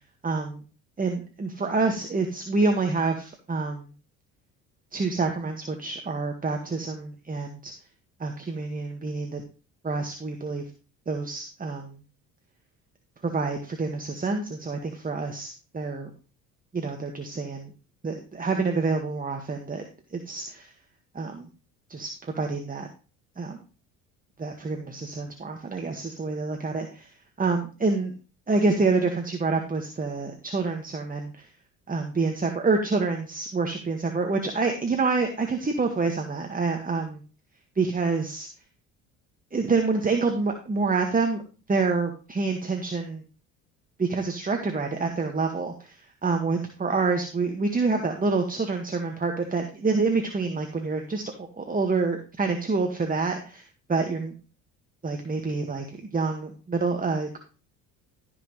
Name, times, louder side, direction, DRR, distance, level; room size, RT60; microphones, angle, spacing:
voice 1, 0.2-0.6 1.0-3.9 4.9-7.7 8.2-9.4 9.8-10.6 11.1-11.9 13.2-16.1 16.7-17.7 18.0-19.8 20.1-20.7 21.2-21.5 21.9-22.9 23.4-23.6 24.4-27.1 27.4-28.1 28.5-31.3 31.9-37.2 37.8-38.5 39.5-41.4 41.7-43.2 44.0-46.0 46.2-54.3 55.0-57.4, right 4 dB, 20° right, 4 dB, 1.8 m, -27 dB
14.5 x 6.2 x 3.2 m, 0.34 s
hypercardioid pair, 65°, 39 cm